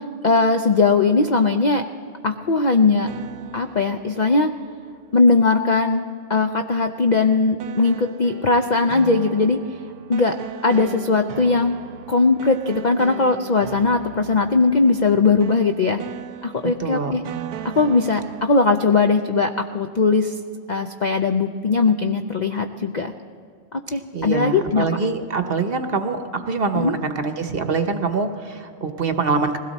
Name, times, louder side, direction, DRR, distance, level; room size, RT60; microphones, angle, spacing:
voice 1, 0.0-1.8 2.2-3.1 3.5-4.5 5.1-6.0 6.3-9.6 10.1-10.4 10.6-11.8 12.1-16.0 16.4-17.2 17.8-20.3 20.7-23.1 23.7-24.9 26.7-26.9, left 3 dB, 50° left, 5 dB, 0.5 m, -19 dB
sound 1, 2.4-5.3 7.6-18.7, right 9 dB, 85° right, 1.1 m, -37 dB
voice 2, 16.8-17.2 23.9-29.6, right 4 dB, 45° right, 8 dB, 1.0 m, -24 dB
21.0 x 16.5 x 4.1 m, 2.3 s
omnidirectional pair, 1.5 m